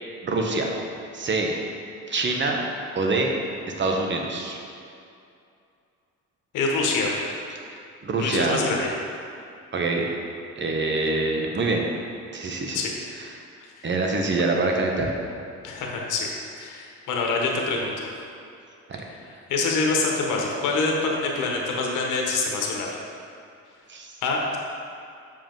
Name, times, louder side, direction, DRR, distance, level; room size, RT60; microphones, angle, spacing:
voice 1, 0.2-0.8 1.1-1.5 2.1-2.6 2.9-3.3 3.8-4.6 7.7-8.6 9.7-10.1 10.6-11.8 12.3-12.8 13.2-13.3 13.8-15.2 18.9-19.0 19.3-19.4 23.9-24.1, right 3 dB, 40° right, 1 dB, 1.0 m, -25 dB
voice 2, 6.5-7.3 8.2-8.9 12.7-12.9 15.6-16.3 16.6-17.9 19.5-22.9 24.2-24.6, left 3 dB, 85° left, -1 dB, 1.1 m, -25 dB
7.1 x 5.1 x 3.8 m, 2.5 s
cardioid pair, 90°, 30 cm